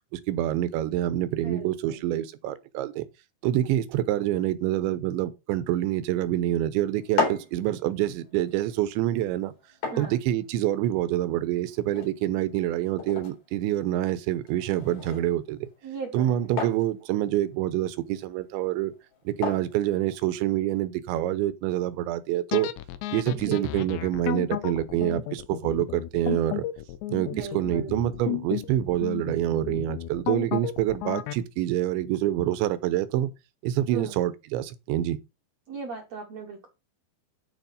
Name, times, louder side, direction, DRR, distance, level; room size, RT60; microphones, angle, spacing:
voice 1, 0.1-3.1 3.4-9.5 10.0-15.7 16.1-18.9 19.3-22.7 23.1-26.7 27.1-33.3 33.6-35.2, right 13 dB, 90° right, 3.3 m, -26 dB
voice 2, 1.4-2.1 9.9-10.1 15.8-16.4 23.3-23.7 27.2-28.1 33.9-34.2 35.7-36.7, right 5 dB, 70° right, 1.6 m, -38 dB
sound 1, 6.9-20.8, left 5 dB, 60° left, 5.8 m, -37 dB
sound 2, 22.5-31.4, left 14 dB, 80° left, 3.0 m, -33 dB
11.5 x 5.1 x 5.3 m
omnidirectional pair, 5.2 m